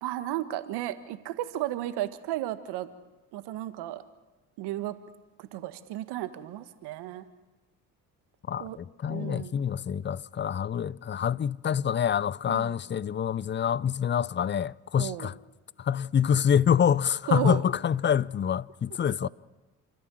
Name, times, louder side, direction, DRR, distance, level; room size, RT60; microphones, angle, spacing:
voice 1, 0.0-2.9 3.3-4.0 4.6-5.0 5.4-7.2 8.6-8.8 9.1-9.6 12.5-12.8 15.0-15.3 17.3-17.6 19.2-19.3, right 14 dB, 70° right, 1.7 m, -33 dB
voice 2, 8.5-15.3 15.8-19.3, left 8 dB, 25° left, 0.6 m, -26 dB
29.0 x 13.5 x 7.8 m
hypercardioid pair, 60°, 41 cm